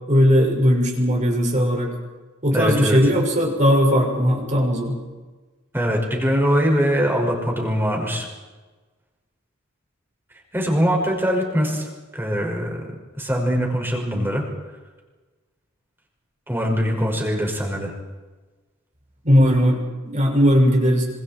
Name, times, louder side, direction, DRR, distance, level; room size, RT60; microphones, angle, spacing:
voice 1, 0.1-1.9 2.4-5.0 19.2-21.0, equal, 35° right, 0 dB, 5.8 m, -18 dB
voice 2, 2.5-3.0 5.7-8.3 10.5-12.9 13.1-14.4 16.5-17.9, equal, 10° right, 0 dB, 5.9 m, -22 dB
27.0 x 26.5 x 4.6 m, 1.3 s
head